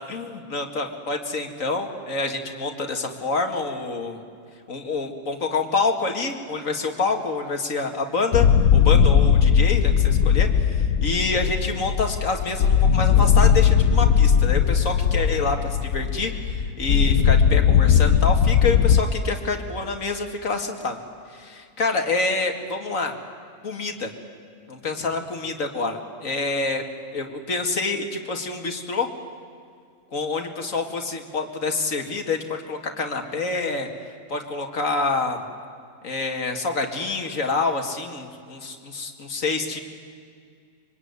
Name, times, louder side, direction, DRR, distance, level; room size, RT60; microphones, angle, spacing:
voice 1, 0.1-4.2 4.7-8.5 8.7-21.0 21.3-23.1 23.6-24.1 24.7-26.8 27.1-29.1 30.1-33.9 34.3-35.4 36.0-39.8, left 3 dB, 60° left, 4 dB, 2.6 m, -27 dB
sound 1, 8.3-19.0, left 7 dB, 85° left, 1.4 m, -18 dB
25.5 x 23.5 x 9.7 m, 2.3 s
omnidirectional pair, 1.6 m